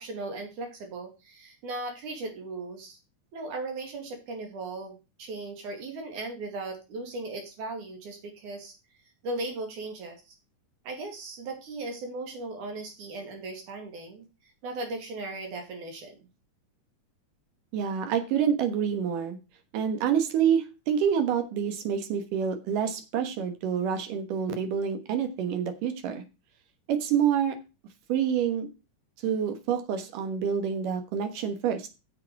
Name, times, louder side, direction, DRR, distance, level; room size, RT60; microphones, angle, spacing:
voice 1, 0.0-3.0 3.3-8.7 9.2-10.3 10.8-16.2, right 2 dB, 70° right, 3 dB, 3.6 m, -37 dB
voice 2, 17.7-19.4 19.7-26.2 26.9-27.6 28.1-28.7 29.2-31.9, right 8 dB, 85° right, 7 dB, 2.9 m, -27 dB
8.6 x 7.6 x 4.7 m, 0.28 s
omnidirectional pair, 3.7 m